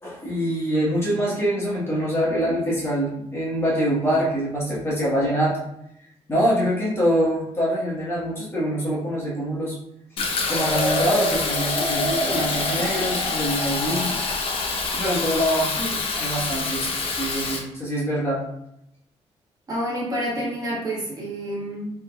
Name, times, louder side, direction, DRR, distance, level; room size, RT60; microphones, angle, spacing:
voice 1, 0.0-5.6 6.3-9.7 10.5-14.1 14.9-15.7 16.2-18.4, equal, 20° left, -7 dB, 1.3 m, -24 dB
Fill (with liquid), 10.2-17.6, left 3 dB, 60° left, 0.7 m, -25 dB
voice 2, 19.7-21.9, equal, 35° right, -5 dB, 1.5 m, -28 dB
4.4 x 3.6 x 2.3 m, 0.79 s
cardioid pair, 135°, 11 cm